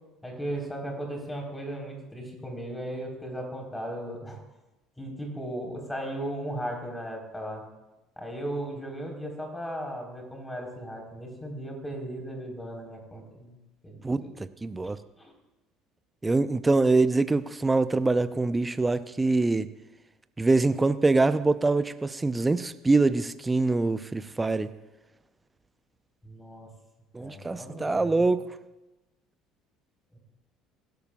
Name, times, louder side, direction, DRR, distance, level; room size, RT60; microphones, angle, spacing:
voice 1, 0.2-4.4 5.0-7.7 8.2-13.6 13.8-14.3 15.2-15.3 26.2-26.7 27.2-28.3 30.1-30.2, right 1 dB, 10° left, 1 dB, 3.9 m, -36 dB
voice 2, 14.6-15.0 16.2-19.7 20.4-24.7 27.1-28.4, right 3 dB, 15° right, 13 dB, 0.6 m, -24 dB
23.0 x 11.5 x 2.3 m, 1.0 s
figure-of-eight pair, 60°, 0 cm